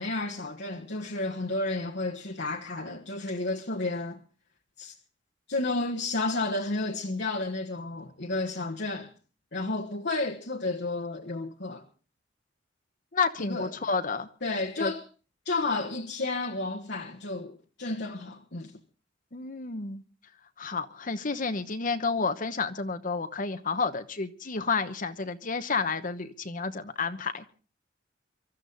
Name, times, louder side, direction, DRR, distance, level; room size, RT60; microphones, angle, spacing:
voice 1, 0.0-4.2 4.8-4.9 5.5-9.1 9.5-11.8 13.4-13.7 14.4-15.0 15.4-18.8, left 2 dB, 65° left, 1.4 m, -31 dB
voice 2, 13.1-14.3 14.8-14.9 19.3-20.0 20.6-27.4, left 4 dB, 45° left, 1.1 m, -30 dB
24.5 x 13.0 x 4.0 m
head